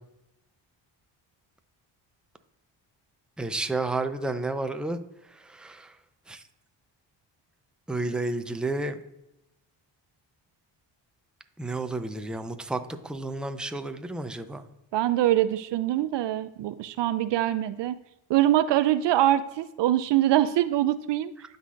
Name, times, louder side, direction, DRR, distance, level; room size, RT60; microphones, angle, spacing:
voice 1, 3.4-5.0 5.3-5.9 6.3-6.4 7.9-9.0 11.6-14.6, right 2 dB, ahead, 8 dB, 0.6 m, -31 dB
voice 2, 14.9-18.0 18.3-21.3, right 13 dB, 65° right, 14 dB, 0.5 m, -24 dB
12.0 x 4.1 x 2.5 m, 0.91 s
supercardioid pair, 60°, 48 cm